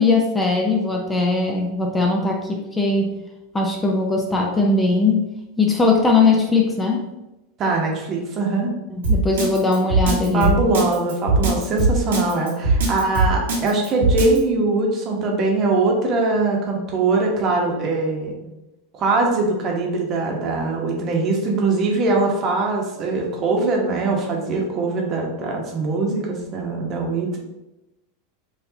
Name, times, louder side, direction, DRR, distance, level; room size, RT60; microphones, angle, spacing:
voice 1, 0.0-3.2 3.5-5.3 5.6-7.0 9.0-10.5, left 3 dB, 15° left, 1 dB, 0.6 m, -19 dB
voice 2, 7.6-8.7 10.3-18.5 18.9-27.4, right 3 dB, 40° right, 0 dB, 1.0 m, -22 dB
Drum kit, 9.0-14.4, right 2 dB, 90° right, 1.3 m, -19 dB
4.6 x 2.6 x 2.8 m, 0.95 s
hypercardioid pair, 115°, 0 cm